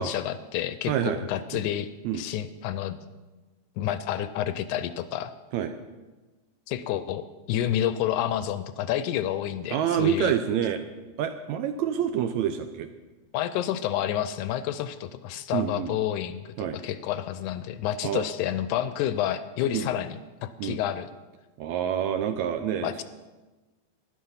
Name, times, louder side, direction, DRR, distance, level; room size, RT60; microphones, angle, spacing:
voice 1, 0.0-1.9 2.1-3.0 3.8-5.3 6.7-10.4 13.3-21.1 22.8-23.0, left 11 dB, 80° left, 13 dB, 1.9 m, -29 dB
voice 2, 0.9-1.2 1.5-1.6 2.0-2.2 5.5-5.8 9.7-10.9 11.2-12.9 15.5-15.9 16.6-16.8 18.0-18.3 19.7-19.9 20.6-20.8 21.6-23.0, right 9 dB, 80° right, 8 dB, 1.7 m, -27 dB
12.0 x 11.0 x 5.6 m, 1.2 s
omnidirectional pair, 3.7 m